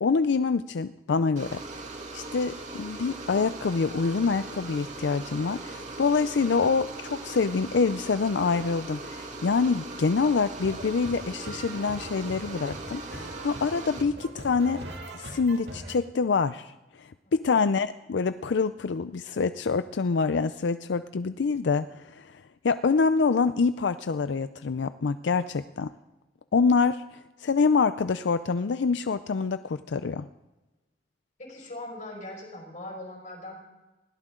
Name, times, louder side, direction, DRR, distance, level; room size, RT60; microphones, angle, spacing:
voice 1, 0.0-1.6 2.1-14.8 15.1-16.7 17.0-25.9 26.5-30.3, left 4 dB, 85° left, 12 dB, 0.5 m, -26 dB
sound 1, 1.4-14.0, right 3 dB, 45° right, 2.5 m, -40 dB
sound 2, 10.5-15.9, right 1 dB, 70° right, 2.6 m, -42 dB
voice 2, 31.4-33.6, left 1 dB, 45° left, 1 dB, 5.4 m, -40 dB
20.5 x 16.5 x 3.8 m, 1.1 s
head